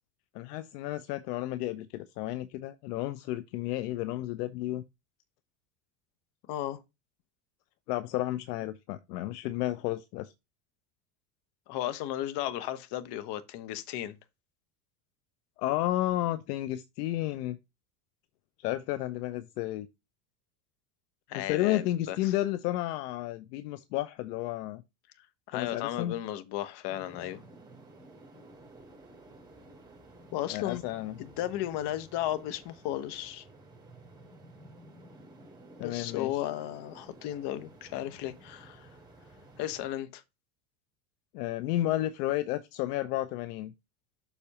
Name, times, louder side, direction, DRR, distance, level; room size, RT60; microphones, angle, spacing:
voice 1, 0.3-4.8 7.9-10.3 15.6-17.6 18.6-19.9 21.3-24.8 25.5-26.1 30.5-31.2 35.8-36.4 41.3-43.7, left 15 dB, 75° left, 0.7 m, -32 dB
voice 2, 6.5-6.8 11.7-14.2 21.3-22.3 25.5-27.4 30.3-30.8 31.2-33.4 35.8-38.9 39.6-40.2, left 13 dB, 55° left, 1.1 m, -35 dB
sound 1, 26.9-39.9, right 2 dB, 10° right, 3.9 m, -53 dB
7.1 x 4.2 x 4.1 m
hypercardioid pair, 90°, 48 cm